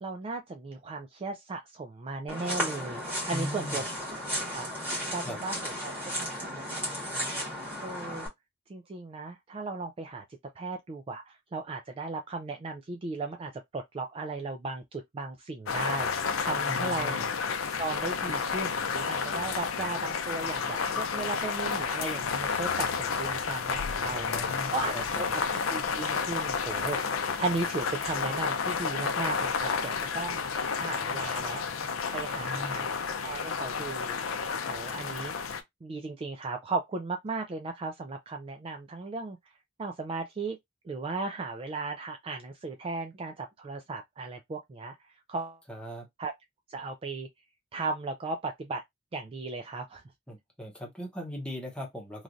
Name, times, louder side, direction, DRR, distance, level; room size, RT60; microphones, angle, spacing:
voice 1, 0.0-3.8 4.5-7.3 7.8-8.3 8.7-10.2 10.6-17.3 17.8-24.3 24.7-30.4 30.7-31.6 32.1-32.9 33.2-34.2 34.7-35.3 35.8-39.4 39.8-40.6 40.8-45.0 45.3-45.6 46.2-46.3 46.7-47.3 47.7-48.8 49.1-50.0, right 3 dB, 30° right, 0.3 m, -36 dB
sound 1, 2.3-8.3, equal, 10° right, 1.4 m, -34 dB
voice 2, 3.3-3.8 5.2-5.4 16.7-17.3 24.1-25.2 32.4-32.9 45.7-46.1 50.3-52.2, equal, 5° left, 0.9 m, -39 dB
sound 2, 15.7-35.6, left 5 dB, 90° left, 0.5 m, -31 dB
3.1 x 2.4 x 2.5 m
head